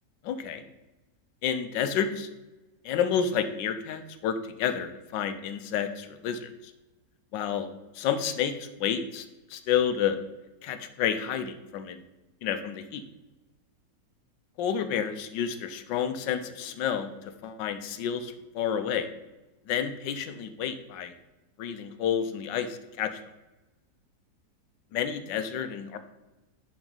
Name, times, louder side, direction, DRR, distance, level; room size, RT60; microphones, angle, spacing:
voice 1, 0.2-0.6 1.4-2.3 2.8-6.5 7.3-7.7 7.9-9.2 9.5-10.2 10.6-12.0 12.4-13.0 14.6-19.1 19.7-21.1 21.6-23.2 24.9-26.0, left 8 dB, 85° left, 9 dB, 1.4 m, -30 dB
10.5 x 5.0 x 4.0 m, 1.1 s
omnidirectional pair, 1.9 m